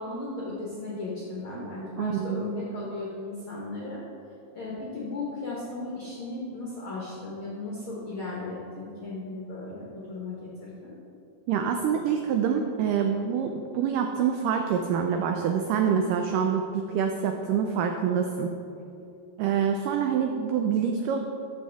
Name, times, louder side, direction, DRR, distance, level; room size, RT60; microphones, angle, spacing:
voice 1, 0.0-4.0 4.5-10.9, left 2 dB, 70° left, -5 dB, 1.2 m, -36 dB
voice 2, 2.0-2.6 11.5-18.5 19.4-21.2, right 7 dB, 90° right, 4 dB, 1.8 m, -26 dB
13.0 x 6.2 x 3.5 m, 2.8 s
omnidirectional pair, 4.3 m